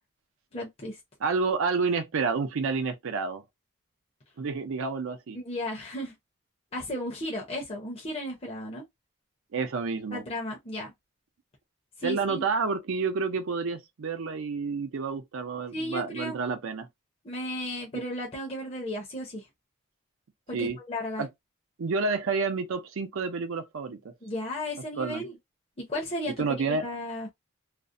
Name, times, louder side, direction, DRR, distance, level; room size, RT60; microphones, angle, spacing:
voice 1, 0.5-1.0 5.3-6.1 6.7-8.8 10.1-10.9 12.0-12.4 15.7-16.4 17.2-19.4 20.5-21.2 24.2-25.4 25.9-27.3, left 1 dB, 25° left, 0.6 m, -34 dB
voice 2, 1.2-3.4 4.4-5.4 9.5-10.2 12.0-16.9 20.5-20.8 21.2-21.3 21.8-24.0 25.0-25.2 26.4-26.8, right 4 dB, 70° right, 0.5 m, -29 dB
2.4 x 2.0 x 2.5 m
head